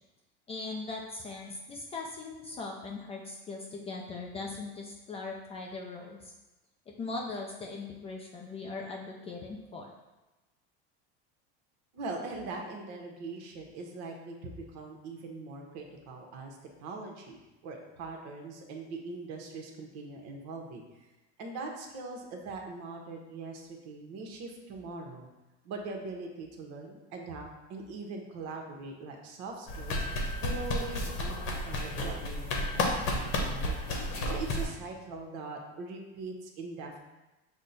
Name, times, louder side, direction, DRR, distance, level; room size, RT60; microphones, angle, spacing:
voice 1, 0.5-6.3 7.0-9.9, left 3 dB, 20° left, 0 dB, 0.3 m, -40 dB
voice 2, 11.9-21.1 21.4-25.3 25.6-30.0 30.4-33.8 34.2-37.0, right 3 dB, 55° right, 2 dB, 0.9 m, -41 dB
sound 1, 29.7-34.6, left 1 dB, 40° left, 0.9 m, -32 dB
6.2 x 2.1 x 4.0 m, 1.1 s
supercardioid pair, 140°, 30 cm